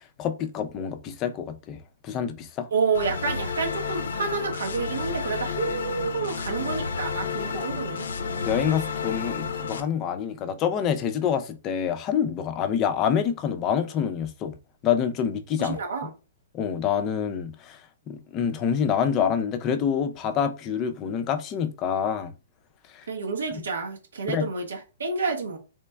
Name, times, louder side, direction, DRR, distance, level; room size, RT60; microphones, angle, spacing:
voice 1, 0.2-2.7 7.5-7.7 8.5-14.5 14.8-15.8 16.5-17.8 18.1-22.3 22.9-23.0 24.3-24.5, left 8 dB, 25° left, 0.4 m, -26 dB
voice 2, 2.7-8.1 15.6-16.1 23.1-25.6, right 4 dB, 90° right, 0.8 m, -29 dB
sound 1, 2.9-9.8, left 5 dB, 80° left, 0.5 m, -31 dB
3.2 x 3.2 x 2.2 m
hypercardioid pair, 150°, 0 cm